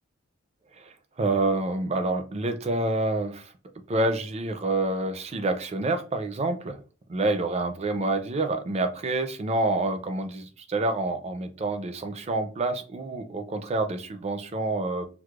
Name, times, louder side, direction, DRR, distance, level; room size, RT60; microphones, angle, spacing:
voice 1, 0.8-3.5 3.9-6.8 7.1-15.1, right 2 dB, 30° right, 7 dB, 0.4 m, -27 dB
4.6 x 2.0 x 2.3 m, 0.36 s
head